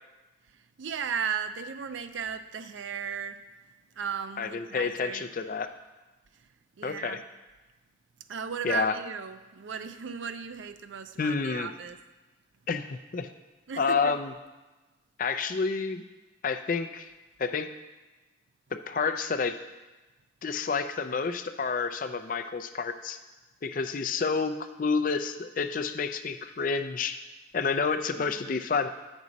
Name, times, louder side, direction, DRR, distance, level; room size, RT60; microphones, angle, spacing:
voice 1, 0.8-3.4 4.0-5.3 6.8-7.2 8.3-12.0 13.7-14.1, right 6 dB, 75° right, 10 dB, 0.5 m, -35 dB
voice 2, 4.4-5.7 6.8-7.2 8.6-9.0 11.2-11.7 12.7-13.3 13.8-14.3 15.2-16.0 16.4-17.1 17.4-17.7 18.9-19.6 20.4-23.2 23.6-27.2 27.5-28.9, left 5 dB, 45° left, 8 dB, 0.4 m, -29 dB
8.6 x 6.1 x 4.0 m, 1.2 s
head